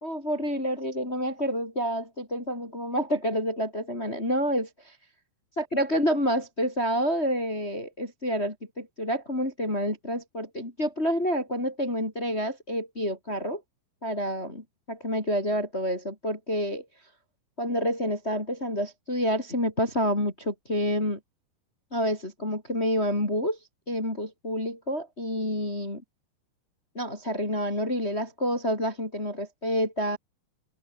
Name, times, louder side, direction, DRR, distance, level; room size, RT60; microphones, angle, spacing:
voice 1, 0.0-4.7 5.6-13.6 14.0-16.8 17.6-21.2 21.9-23.6 23.9-26.0 26.9-30.2, equal, 15° left, 4.1 m, -28 dB
open air
omnidirectional pair, 5.2 m